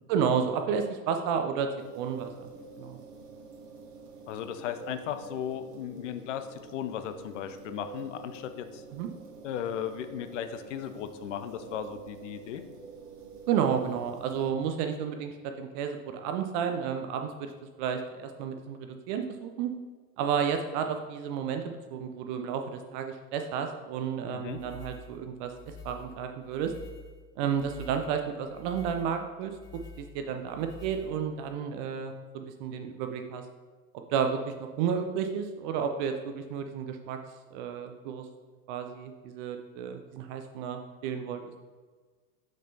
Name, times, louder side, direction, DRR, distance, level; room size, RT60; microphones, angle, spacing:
voice 1, 0.1-1.7 2.0-2.3 2.8-3.0 8.9-9.1 13.5-17.5 17.8-18.8 19.1-19.7 20.2-25.5 25.8-26.7 27.4-29.5 30.0-33.4 34.1-37.2 37.5-38.2 38.7-41.4, right 7 dB, 35° right, 6 dB, 0.4 m, -31 dB
sound 1, 1.8-14.5, right 5 dB, 75° right, 1.1 m, -47 dB
voice 2, 4.3-8.8 9.4-12.6 24.3-24.6, left 9 dB, 50° left, 10 dB, 0.6 m, -36 dB
sound 2, 24.4-31.6, left 4 dB, 90° left, 0.9 m, -48 dB
6.7 x 6.2 x 2.7 m, 1.4 s
figure-of-eight pair, 90°, 46 cm